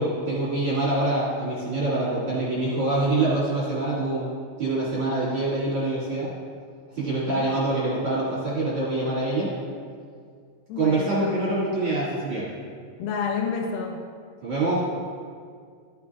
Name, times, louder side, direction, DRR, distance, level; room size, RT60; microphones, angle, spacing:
voice 1, 0.0-4.3 4.6-6.3 6.9-9.5 10.8-12.4 14.4-14.8, right 2 dB, 45° right, -9 dB, 2.0 m, -25 dB
voice 2, 10.7-11.5 13.0-14.0, left 6 dB, 90° left, 0 dB, 2.0 m, -29 dB
14.0 x 8.3 x 2.4 m, 2.1 s
omnidirectional pair, 5.6 m